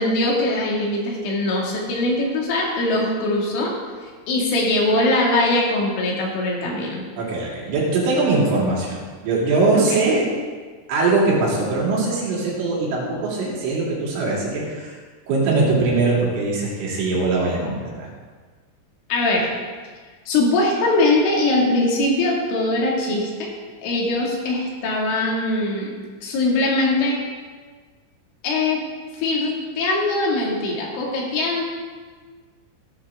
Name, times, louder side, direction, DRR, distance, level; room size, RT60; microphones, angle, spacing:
voice 1, 0.0-3.7 4.3-7.0 9.7-9.8 19.1-19.5 20.3-23.5 23.8-27.2 28.4-28.9 29.2-31.6, left 2 dB, 75° left, -2 dB, 4.7 m, -21 dB
voice 2, 7.2-9.0 9.2-10.3 10.9-15.0 15.3-18.1, right 3 dB, 75° right, -5 dB, 5.5 m, -21 dB
17.0 x 11.0 x 3.7 m, 1.5 s
omnidirectional pair, 5.7 m